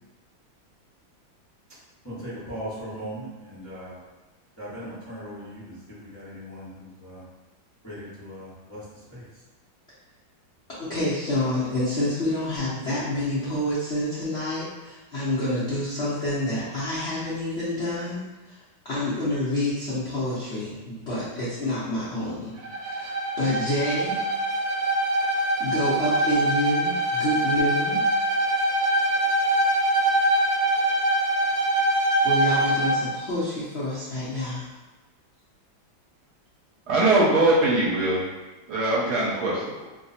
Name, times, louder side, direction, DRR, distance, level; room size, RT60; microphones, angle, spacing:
voice 1, 2.0-4.0 4.6-7.3 7.8-9.3, equal, 20° left, -11 dB, 0.4 m, -39 dB
voice 2, 10.8-18.2 18.8-22.5 22.9-24.2 25.6-28.0 32.2-34.7, left 1 dB, 60° left, -10 dB, 0.7 m, -28 dB
Bowed string instrument, 22.6-33.1, right 1 dB, 90° right, 1.4 m, -23 dB
voice 3, 36.9-38.2 38.7-39.6, right 2 dB, 65° right, -7 dB, 1.3 m, -21 dB
3.2 x 2.0 x 4.0 m, 1.1 s
omnidirectional pair, 2.1 m